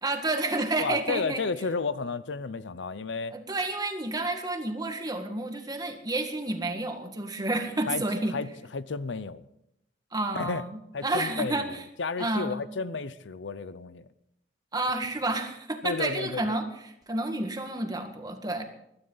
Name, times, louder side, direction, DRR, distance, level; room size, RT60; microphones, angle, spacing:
voice 1, 0.0-1.4 3.3-8.3 10.1-11.8 12.2-12.6 14.7-18.6, right 2 dB, 20° right, 1.8 m, -30 dB
voice 2, 0.8-3.4 7.9-8.0 8.3-8.5 8.7-9.5 10.3-10.6 10.9-14.1 15.8-16.6, left 4 dB, 75° left, 0.7 m, -32 dB
21.0 x 12.5 x 4.0 m
head